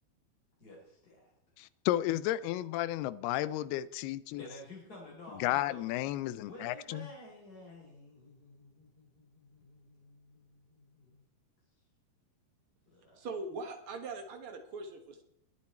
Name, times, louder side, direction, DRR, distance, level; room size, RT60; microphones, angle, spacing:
voice 1, 0.6-1.3 4.4-5.8 6.3-11.2 12.9-13.2, left 1 dB, 25° left, -4 dB, 4.2 m, -52 dB
voice 2, 1.6-4.5 5.4-7.1, left 14 dB, 80° left, 18 dB, 2.5 m, -33 dB
voice 3, 13.2-15.2, right 3 dB, 75° right, 5 dB, 1.2 m, -41 dB
21.0 x 9.2 x 4.3 m, 0.74 s
omnidirectional pair, 4.7 m